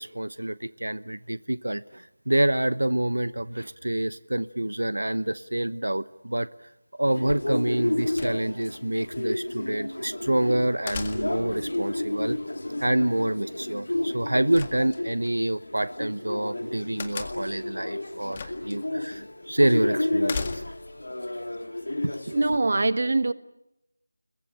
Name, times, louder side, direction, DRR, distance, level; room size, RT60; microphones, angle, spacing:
voice 1, 0.0-6.5 6.9-12.4 12.8-20.6 21.3-21.4 22.0-22.1, right 1 dB, 90° right, 1.0 m, -27 dB
sound 1, 7.1-22.6, left 1 dB, 75° left, 3.4 m, -32 dB
sound 2, 8.2-8.8 10.9-11.6 14.5-15.3 17.0-17.6 18.3-18.8 19.1-19.2 20.2-21.0, left 5 dB, 25° left, 1.9 m, -36 dB
voice 2, 22.3-23.3, right 2 dB, 50° right, 1.4 m, -23 dB
30.0 x 21.0 x 8.9 m
figure-of-eight pair, 170°, 0 cm